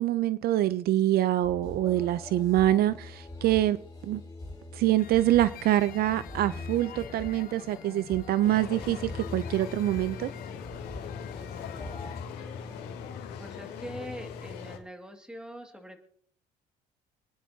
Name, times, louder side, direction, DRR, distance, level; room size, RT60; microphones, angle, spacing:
voice 1, 0.0-3.8 4.0-4.2 4.7-10.3, right 14 dB, 65° right, 0.5 m, -25 dB
sound 1, 1.4-12.3, left 2 dB, 25° left, 6.8 m, -43 dB
sound 2, 5.0-12.2, left 10 dB, 60° left, 0.9 m, -47 dB
sound 3, 8.4-14.8, left 6 dB, 80° left, 2.7 m, -40 dB
voice 2, 12.7-13.0 13.4-16.1, equal, 5° right, 2.0 m, -43 dB
26.0 x 10.0 x 2.8 m
cardioid pair, 110°, 17 cm